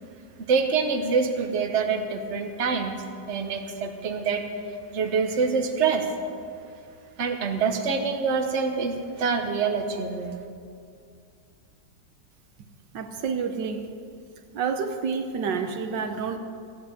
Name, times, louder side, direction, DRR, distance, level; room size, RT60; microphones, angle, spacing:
voice 1, 0.4-2.9 3.3-4.4 4.9-6.0 7.2-10.4, right 5 dB, 45° right, 4 dB, 1.3 m, -25 dB
voice 2, 12.9-13.9 14.5-16.4, right 5 dB, 75° right, 7 dB, 1.6 m, -29 dB
15.0 x 9.2 x 8.2 m, 2.4 s
omnidirectional pair, 1.9 m